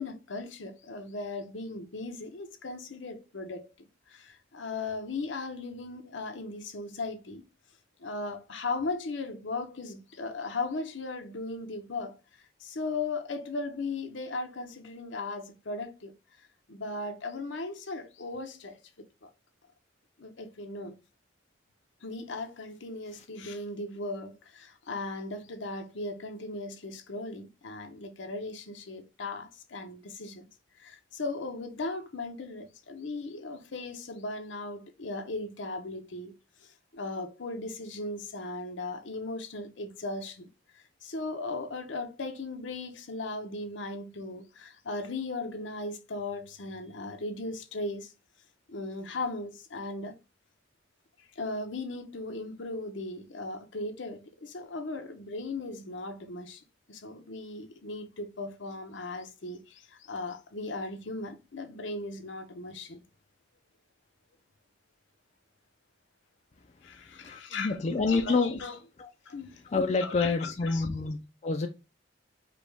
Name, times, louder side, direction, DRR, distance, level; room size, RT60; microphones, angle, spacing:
voice 1, 0.0-3.7 4.1-7.4 8.0-12.2 12.6-16.2 16.7-18.8 19.2-19.3 20.2-21.0 22.0-30.5 30.8-48.1 48.7-50.2 51.2-63.0 66.8-67.8 68.0-68.8 69.3-69.6 70.0-71.0, left 3 dB, 70° left, 0.8 m, -37 dB
voice 2, 67.2-68.6 69.0-69.1 69.7-71.7, left 4 dB, 35° left, 0.4 m, -28 dB
5.0 x 2.3 x 3.4 m
head